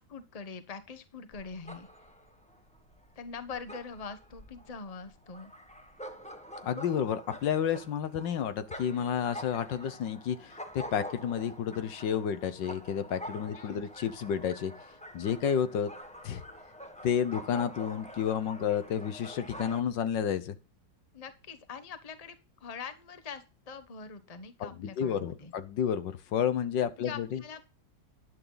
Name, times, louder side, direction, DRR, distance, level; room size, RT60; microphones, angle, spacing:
voice 1, 0.0-1.9 3.1-5.5 13.5-13.9 21.1-25.5 27.0-27.6, left 5 dB, 25° left, 1.0 m, -43 dB
sound 1, 1.3-19.8, equal, 5° left, 1.2 m, -47 dB
voice 2, 6.6-14.7 15.1-15.9 16.2-16.4 17.0-20.5 24.6-27.4, left 8 dB, 75° left, 1.7 m, -31 dB
11.0 x 10.5 x 4.0 m
omnidirectional pair, 2.0 m